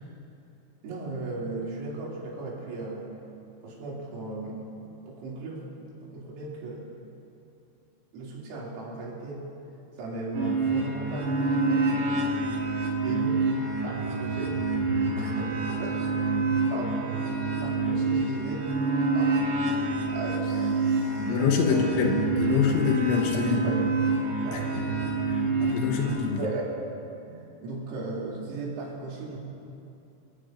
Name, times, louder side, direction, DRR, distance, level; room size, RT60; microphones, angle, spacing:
voice 1, 0.8-3.1 3.6-5.6 6.0-6.9 8.1-9.5 10.0-12.1 13.0-13.5 13.8-14.6 15.2-16.2 16.7-17.1 17.6-18.7 19.1-19.6 20.1-21.9 22.5-22.6 23.6-23.8 24.4-24.7 26.4-26.8 27.3-29.4, right 2 dB, 90° right, -5 dB, 5.4 m, -37 dB
sound 1, 10.3-26.2, right 3 dB, 75° right, 5.2 m, -27 dB
voice 2, 21.2-23.6 24.5-24.8 25.3-26.5, left 6 dB, 75° left, 2 dB, 3.3 m, -25 dB
27.5 x 15.0 x 2.6 m, 2.7 s
omnidirectional pair, 5.9 m